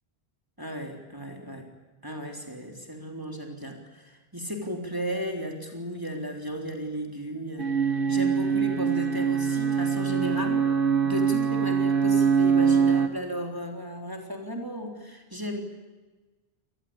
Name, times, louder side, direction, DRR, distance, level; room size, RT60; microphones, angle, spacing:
voice 1, 0.6-1.7 2.0-15.6, equal, 20° right, 2 dB, 3.6 m, -35 dB
sound 1, 7.6-13.1, right 6 dB, 60° right, 1.7 m, -23 dB
27.0 x 20.0 x 8.8 m, 1.2 s
omnidirectional pair, 1.0 m